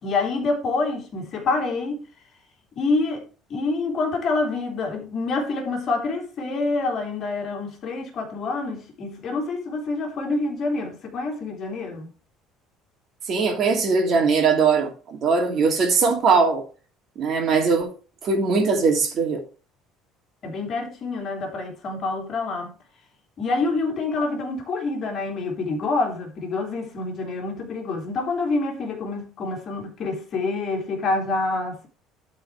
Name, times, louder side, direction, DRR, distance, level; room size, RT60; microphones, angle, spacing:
voice 1, 0.0-2.0 2.7-3.2 3.5-12.1 20.4-22.7 23.4-31.9, left 3 dB, 35° left, 3.0 m, -27 dB
voice 2, 13.3-16.6 17.2-17.9 18.2-19.4, right 4 dB, 40° right, 2.6 m, -20 dB
12.0 x 4.8 x 4.9 m
cardioid pair, 150°, 0 cm